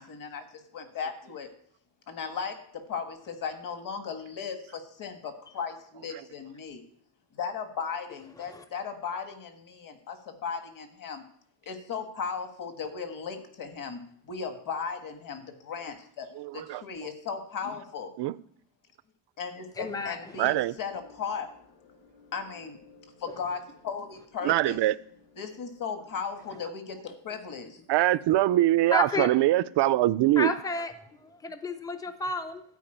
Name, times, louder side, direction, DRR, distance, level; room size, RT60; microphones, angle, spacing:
voice 1, 0.0-1.5 2.1-6.8 7.3-11.2 11.6-16.3 16.5-18.1 19.4-21.5 22.3-22.8 23.2-24.8 25.4-27.9, left 6 dB, 45° left, 1.6 m, -36 dB
voice 2, 16.4-16.8 18.2-18.3 20.4-20.7 24.4-24.9 27.9-30.5, right 15 dB, 60° right, 0.5 m, -23 dB
voice 3, 19.8-20.4 28.9-29.3 30.4-32.6, left 3 dB, 10° left, 0.6 m, -32 dB
sound 1, 20.5-26.6, left 4 dB, 75° left, 3.1 m, -58 dB
13.0 x 4.8 x 8.9 m
cardioid pair, 155°, 46 cm